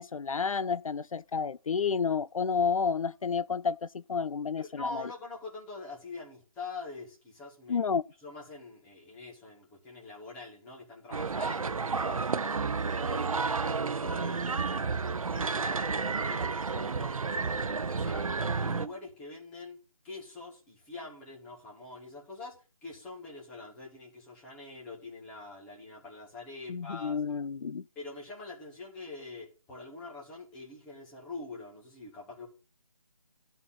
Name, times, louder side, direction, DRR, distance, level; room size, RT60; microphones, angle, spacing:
voice 1, 0.0-5.1 7.7-8.0 26.7-27.8, left 5 dB, 70° left, 0.4 m, -30 dB
voice 2, 4.6-7.8 8.2-12.5 12.9-14.4 14.7-16.4 16.7-18.3 18.6-19.8 20.0-22.5 22.8-27.2 27.9-32.5, left 3 dB, 5° left, 1.3 m, -44 dB
sound 1, 11.1-18.9, right 4 dB, 75° right, 0.7 m, -31 dB
10.5 x 4.4 x 7.2 m
figure-of-eight pair, 170°, 18 cm